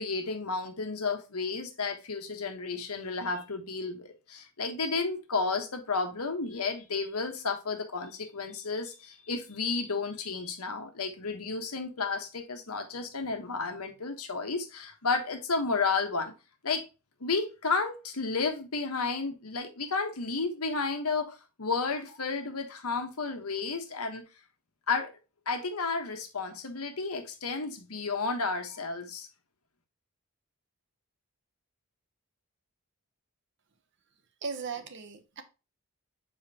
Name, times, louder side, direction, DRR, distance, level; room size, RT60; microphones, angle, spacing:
voice 1, 0.0-16.3 16.6-16.9 17.2-24.2 24.9-25.1 25.5-29.3, left 4 dB, 80° left, 1.3 m, -32 dB
voice 2, 34.4-35.4, right 5 dB, 50° right, 1.0 m, -37 dB
7.3 x 4.7 x 2.8 m
head